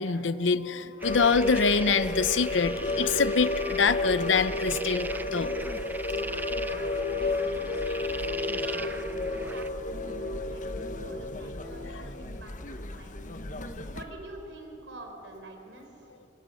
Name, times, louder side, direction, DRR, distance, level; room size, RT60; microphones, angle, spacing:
voice 1, 0.0-5.5, left 5 dB, 90° left, 13 dB, 0.8 m, -25 dB
sound 1, 1.0-14.0, left 2 dB, 45° left, 1.1 m, -32 dB
sound 2, 1.0-9.7, right 2 dB, 10° right, 0.6 m, -40 dB
Organ, 2.5-12.1 12.4-12.6, left 2 dB, 45° right, 6.9 m, -47 dB
voice 2, 6.6-13.2 13.9-16.1, right 2 dB, 80° right, 3 dB, 4.6 m, -47 dB
27.0 x 24.0 x 6.5 m, 3.0 s
head